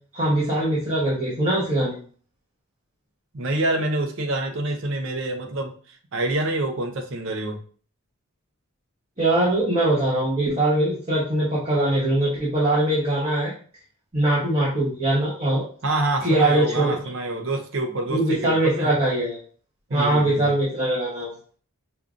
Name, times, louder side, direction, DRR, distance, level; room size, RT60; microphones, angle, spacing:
voice 1, 0.1-1.9 9.2-13.5 14.1-15.6 16.2-17.0 18.1-19.4 19.9-21.3, right 1 dB, 25° right, -7 dB, 0.9 m, -22 dB
voice 2, 3.3-7.6 15.8-18.9 19.9-20.5, right 2 dB, 60° right, 5 dB, 0.6 m, -27 dB
5.2 x 2.4 x 2.5 m, 0.43 s
head